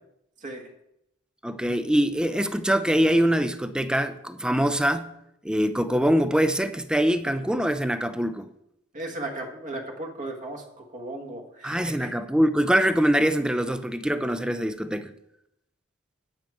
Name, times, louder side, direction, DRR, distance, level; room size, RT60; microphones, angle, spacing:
voice 1, 1.4-5.1 5.4-8.5 11.6-15.1, equal, 5° right, 0.5 m, -23 dB
voice 2, 8.9-12.1, right 2 dB, 40° right, 1.4 m, -36 dB
9.1 x 8.8 x 4.7 m
head